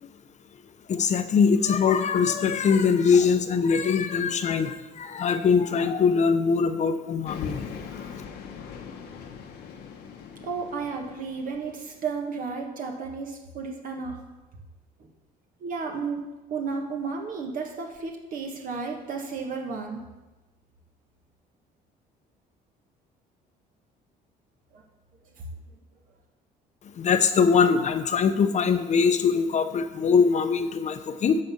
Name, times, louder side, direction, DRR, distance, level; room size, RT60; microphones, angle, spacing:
voice 1, 0.9-7.6 27.0-31.4, left 6 dB, 45° left, 9 dB, 0.9 m, -22 dB
sound 1, 7.2-12.0, left 6 dB, 80° left, 1.3 m, -40 dB
voice 2, 10.4-14.2 15.6-16.2 16.5-20.0 24.7-24.8, right 5 dB, 55° right, 1 dB, 1.5 m, -33 dB
11.5 x 4.3 x 7.2 m, 1.1 s
cardioid pair, 110°, 17 cm